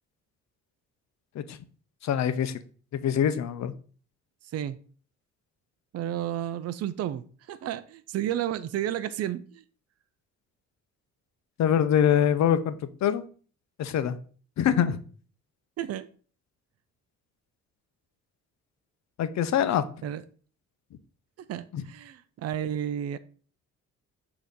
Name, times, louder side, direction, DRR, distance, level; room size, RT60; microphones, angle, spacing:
voice 1, 2.0-2.5 2.9-3.7 11.6-12.7 13.0-13.2 13.8-14.2 14.6-15.0 19.2-19.8, left 9 dB, 65° left, 0.7 m, -24 dB
voice 2, 5.9-9.6 15.8-16.1 20.0-20.2 21.5-23.2, right 11 dB, 55° right, 0.5 m, -32 dB
6.2 x 2.9 x 5.2 m
cardioid pair, 90°, 30 cm